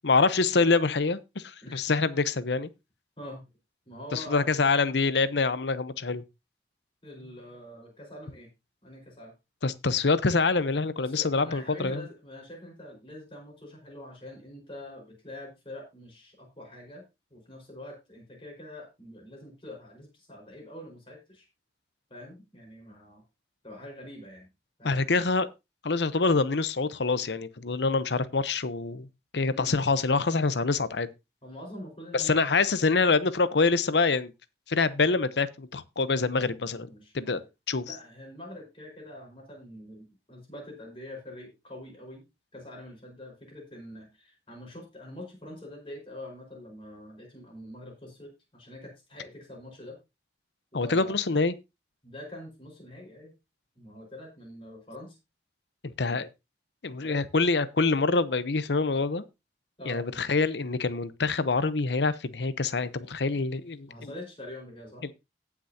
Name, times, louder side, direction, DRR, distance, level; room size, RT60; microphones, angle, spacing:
voice 1, 0.0-2.7 4.1-6.2 9.6-12.0 24.8-25.5 25.8-29.1 29.3-31.1 32.1-34.3 34.7-36.9 37.1-37.4 37.7-37.8 50.7-51.5 55.8-56.3 56.8-59.2 59.9-64.1 65.0-65.1, left 4 dB, 80° left, 0.8 m, -25 dB
voice 2, 3.9-4.5 7.0-8.5 8.8-9.3 11.0-17.0 17.3-21.5 22.1-23.2 23.6-24.5 24.8-25.1 29.5-29.7 31.4-32.5 36.8-37.4 37.8-42.3 42.5-50.0 50.7-51.2 52.0-53.3 53.7-55.2 57.0-57.2 59.8-60.2 63.9-65.1, left 1 dB, 30° left, 4.8 m, -45 dB
18.0 x 6.1 x 2.8 m
head